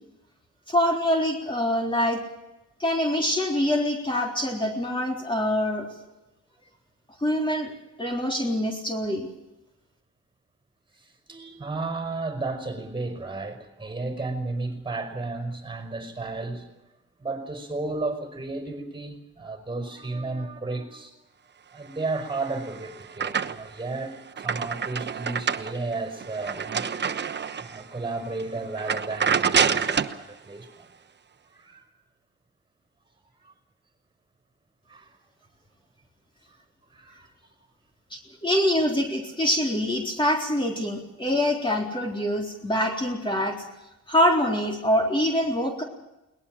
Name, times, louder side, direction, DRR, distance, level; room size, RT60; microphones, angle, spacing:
voice 1, 0.7-2.2 2.8-5.9 7.2-7.7 8.0-9.3 38.1-43.6 44.1-45.8, left 1 dB, 15° left, 1 dB, 3.9 m, -25 dB
voice 2, 11.3-16.7 17.2-21.2 21.7-26.9 27.5-30.9 31.5-31.8 33.4-33.5 34.9-35.1 36.9-37.3, right 3 dB, 15° right, 8 dB, 5.2 m, -33 dB
sound 1, 22.3-23.8 24.2-27.8 28.3-28.4 28.8-30.2, right 6 dB, 35° right, 1.1 m, -27 dB
22.0 x 19.5 x 7.7 m, 0.96 s
cardioid pair, 90°, 30 cm